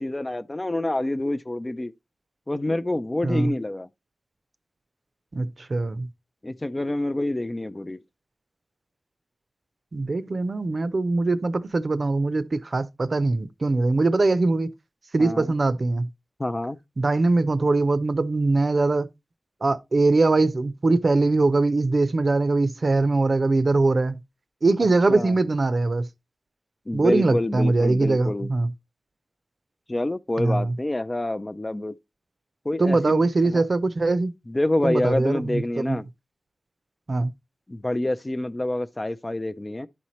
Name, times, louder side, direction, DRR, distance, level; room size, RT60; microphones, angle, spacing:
voice 1, 0.0-1.9 2.5-3.9 6.4-8.0 15.2-15.5 16.4-16.8 25.1-25.3 26.9-28.5 29.9-32.0 32.6-33.6 34.5-36.1 37.7-39.9, left 1 dB, 25° left, 0.4 m, -27 dB
voice 2, 5.3-6.1 9.9-14.7 15.1-16.1 17.0-19.1 19.6-24.2 24.6-26.1 26.9-28.7 30.4-30.7 32.8-34.3 34.8-36.0 37.1-37.3, right 3 dB, 55° right, 0.6 m, -22 dB
11.5 x 4.3 x 3.0 m
wide cardioid pair, 80°, 0 cm